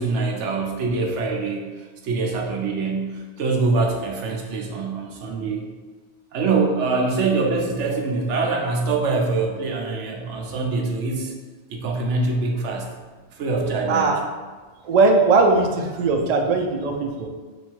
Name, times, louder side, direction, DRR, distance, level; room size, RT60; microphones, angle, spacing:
voice 1, 0.0-5.7 6.3-11.3 11.7-12.9 13.3-14.1, right 3 dB, 80° right, 0 dB, 1.0 m, -24 dB
voice 2, 13.9-14.2 14.8-17.3, right 3 dB, 60° right, 3 dB, 0.4 m, -19 dB
3.5 x 2.7 x 4.4 m, 1.4 s
omnidirectional pair, 1.2 m